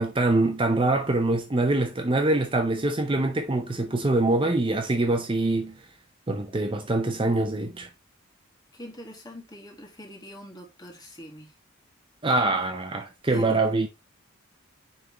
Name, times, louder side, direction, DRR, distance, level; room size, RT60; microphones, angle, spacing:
voice 1, 0.0-5.7 6.3-7.9 12.2-13.9, right 2 dB, 25° right, 0.6 m, -24 dB
voice 2, 8.7-11.5 13.3-13.8, left 1 dB, 20° left, 1.9 m, -43 dB
9.4 x 3.6 x 3.1 m
head